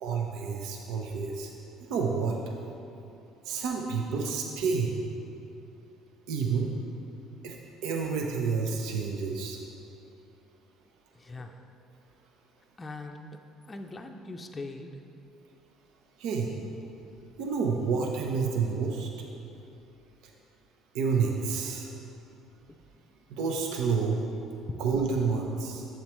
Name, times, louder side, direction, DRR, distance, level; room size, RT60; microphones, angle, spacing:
voice 1, 0.0-1.5 1.8-2.4 3.4-5.0 6.3-6.7 7.4-7.6 7.8-9.6 16.2-16.5 17.4-19.1 20.2-20.3 20.9-21.9 23.3-24.3 24.8-25.9, right 5 dB, 75° right, 1 dB, 0.7 m, -29 dB
voice 2, 11.1-11.6 12.8-13.4 13.7-15.0, left 2 dB, 25° left, 3 dB, 0.5 m, -41 dB
8.4 x 7.2 x 3.1 m, 2.7 s
supercardioid pair, 85°, 0 cm